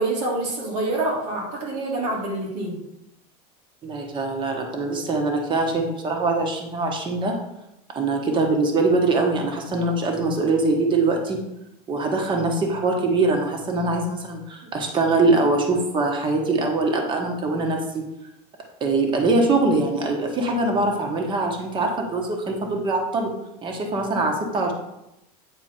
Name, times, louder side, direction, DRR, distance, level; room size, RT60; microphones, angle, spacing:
voice 1, 0.0-2.8, right 2 dB, 90° right, -2 dB, 2.8 m, -26 dB
voice 2, 3.8-7.3 7.9-11.4 11.9-18.0 18.8-23.3 23.6-24.7, right 3 dB, 25° right, 2 dB, 1.2 m, -23 dB
8.7 x 4.3 x 4.3 m, 0.88 s
supercardioid pair, 155°, 20 cm